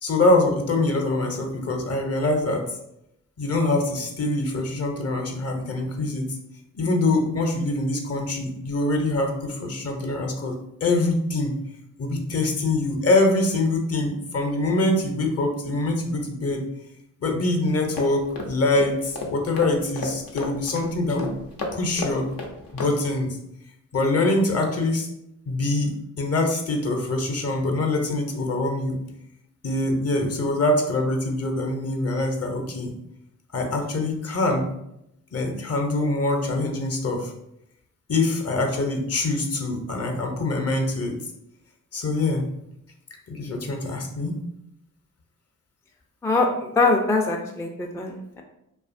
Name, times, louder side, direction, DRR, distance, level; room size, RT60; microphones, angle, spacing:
voice 1, 0.0-2.7 3.4-6.3 6.7-11.6 12.0-16.6 17.2-21.3 21.7-22.3 22.7-23.4 23.9-25.1 25.5-29.0 29.6-32.9 33.5-34.7 35.3-37.3 38.1-41.2 41.9-42.5 43.3-44.4, left 2 dB, 45° left, 2 dB, 0.7 m, -24 dB
sound 1, 18.0-22.9, left 3 dB, 75° left, 0.6 m, -34 dB
voice 2, 46.2-48.4, left 3 dB, 10° left, 1 dB, 0.3 m, -23 dB
2.7 x 2.4 x 2.5 m, 0.81 s
supercardioid pair, 45°, 35 cm